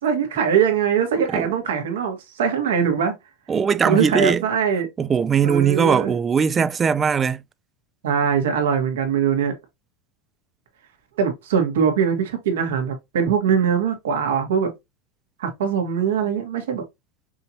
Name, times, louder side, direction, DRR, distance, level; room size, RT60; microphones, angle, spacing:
voice 1, 0.0-3.1 3.8-4.9 5.4-6.1 8.0-9.6 11.2-14.7 15.4-16.8, right 7 dB, 85° right, 1.7 m, -22 dB
voice 2, 3.5-4.4 5.0-7.4, right 6 dB, 25° right, 0.4 m, -20 dB
5.5 x 2.9 x 2.8 m
supercardioid pair, 120°, 0 cm